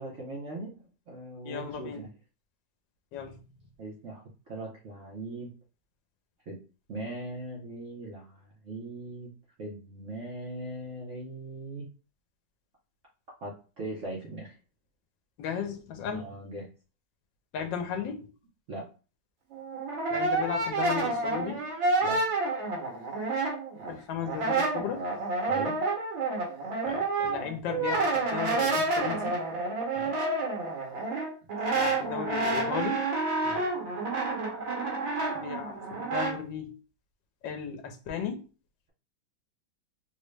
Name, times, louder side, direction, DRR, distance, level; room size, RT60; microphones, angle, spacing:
voice 1, 0.0-2.1 3.8-5.5 6.5-6.6 6.9-9.3 9.6-11.9 13.4-14.5 16.1-16.7 18.7-18.9 22.0-22.2 25.5-25.8 30.0-30.1 33.4-33.6, right 2 dB, 60° right, 0.8 m, -40 dB
voice 2, 1.4-2.0 3.1-3.4 15.4-16.3 17.5-18.3 20.1-21.6 23.9-25.0 26.8-29.4 31.7-33.1 35.3-36.8 37.4-38.4, left 7 dB, 75° left, 1.3 m, -35 dB
Brass instrument, 19.5-23.9 24.2-36.4, right 3 dB, 80° right, 1.7 m, -29 dB
3.8 x 2.1 x 3.1 m
omnidirectional pair, 2.0 m